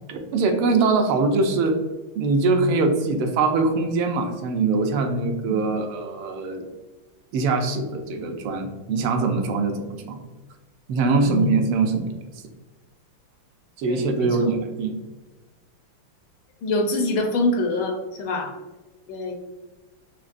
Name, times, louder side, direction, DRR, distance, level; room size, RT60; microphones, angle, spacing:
voice 1, 0.1-1.8 2.1-6.7 7.3-10.2 10.9-12.2 13.8-14.9, right 3 dB, 80° right, 4 dB, 1.4 m, -22 dB
voice 2, 11.2-11.5 13.9-14.5 16.6-18.5 19.1-19.3, left 2 dB, 75° left, 2 dB, 1.3 m, -25 dB
5.2 x 3.1 x 2.5 m, 1.2 s
omnidirectional pair, 2.4 m